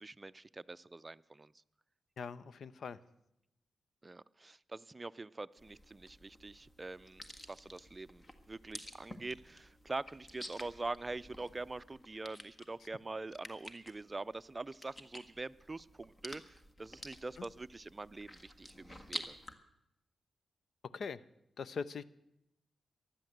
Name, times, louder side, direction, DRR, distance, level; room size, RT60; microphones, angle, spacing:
voice 1, 0.0-1.5 4.0-19.4, right 3 dB, 25° right, 16 dB, 0.5 m, -44 dB
voice 2, 2.2-3.0 20.9-21.2 21.6-22.0, left 5 dB, 70° left, 18 dB, 0.6 m, -41 dB
sound 1, 5.6-19.5, left 1 dB, 30° left, 1.7 m, -51 dB
15.0 x 11.5 x 8.0 m, 0.85 s
cardioid pair, 75°, 0 cm